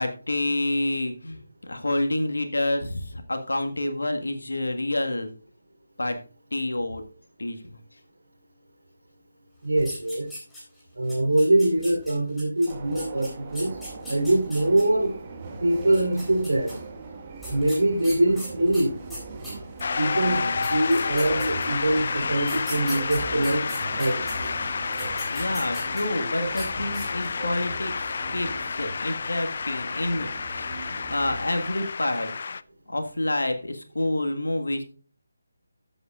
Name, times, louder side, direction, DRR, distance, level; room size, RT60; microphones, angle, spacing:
voice 1, 0.0-5.3 6.0-6.2 6.5-7.0 7.4-7.8 20.4-20.5 25.3-32.3 32.9-34.8, left 1 dB, 75° left, 6 dB, 1.7 m, -28 dB
voice 2, 9.6-10.3 11.0-13.7 14.1-15.1 15.6-16.7 17.5-18.9 20.0-23.6 24.0-24.2, right 1 dB, 70° right, 2 dB, 3.5 m, -23 dB
sound 1, 9.8-10.8 11.1-14.8 15.8-16.7 17.4-19.9 20.4-20.5 20.6-21.8 22.4-24.3 24.8-26.2 26.5-26.7 26.9-27.4, equal, 5° left, 3.9 m, -39 dB
sound 2, 12.7-31.9, right 3 dB, 25° right, 1.7 m, -40 dB
Shout / Cheering / Applause, 19.8-32.6, left 5 dB, 45° left, 0.4 m, -30 dB
14.0 x 8.0 x 2.4 m, 0.39 s
figure-of-eight pair, 155°, 0 cm